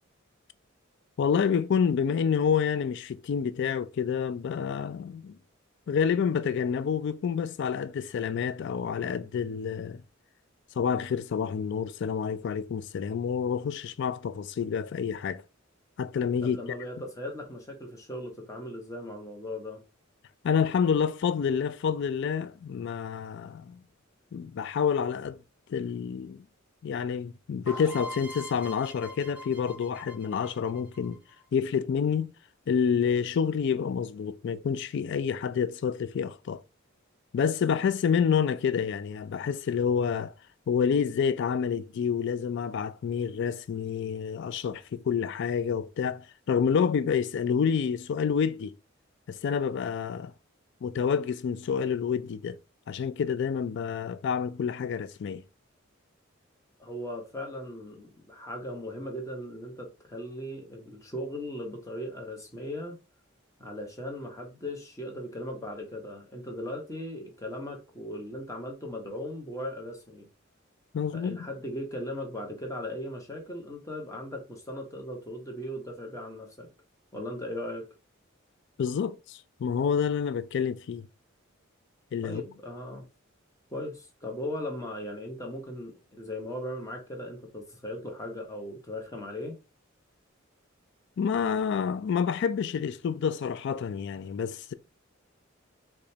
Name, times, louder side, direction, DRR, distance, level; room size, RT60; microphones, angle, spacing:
voice 1, 1.2-5.4 5.9-10.0 10.8-15.4 16.0-16.6 20.4-23.8 24.3-25.4 25.7-26.4 26.8-31.2 31.5-32.3 32.7-36.6 37.3-40.3 40.7-48.7 49.3-50.3 50.8-52.6 52.9-55.4 70.9-71.4 78.8-81.1 82.1-82.4 91.2-94.7, left 7 dB, 60° left, 0.3 m, -28 dB
voice 2, 16.4-19.8 56.8-63.0 63.6-70.3 71.1-76.7 77.1-77.9 82.2-83.1 83.7-89.6, left 1 dB, 15° left, 1.0 m, -38 dB
sound 1, 27.7-31.4, equal, 10° right, 1.2 m, -42 dB
4.9 x 2.2 x 2.7 m
head